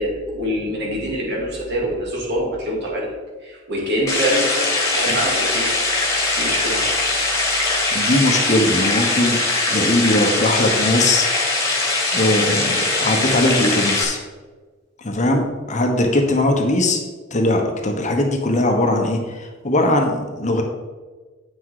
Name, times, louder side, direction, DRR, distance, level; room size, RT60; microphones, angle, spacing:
voice 1, 0.0-3.1 3.4-5.7 6.3-6.9, equal, 60° right, -2 dB, 2.5 m, -25 dB
sound 1, 4.1-14.0, left 2 dB, 15° left, 1.8 m, -21 dB
voice 2, 7.6-9.4 9.7-11.3 12.1-14.2 15.0-17.0 17.3-20.6, left 1 dB, 35° left, 3 dB, 1.1 m, -20 dB
8.7 x 6.0 x 4.8 m, 1.4 s
head